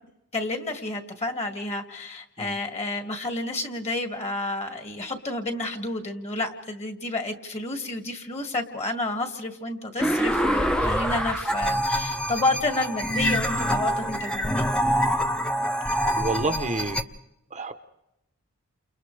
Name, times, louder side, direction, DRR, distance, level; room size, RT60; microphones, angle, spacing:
voice 1, 0.3-14.7, left 2 dB, 30° left, 5 dB, 2.2 m, -30 dB
sound 1, 10.0-17.0, equal, 5° left, 0.8 m, -25 dB
voice 2, 16.1-17.0 17.5-17.7, right 2 dB, 30° right, 8 dB, 0.9 m, -29 dB
29.5 x 28.5 x 3.4 m, 0.89 s
head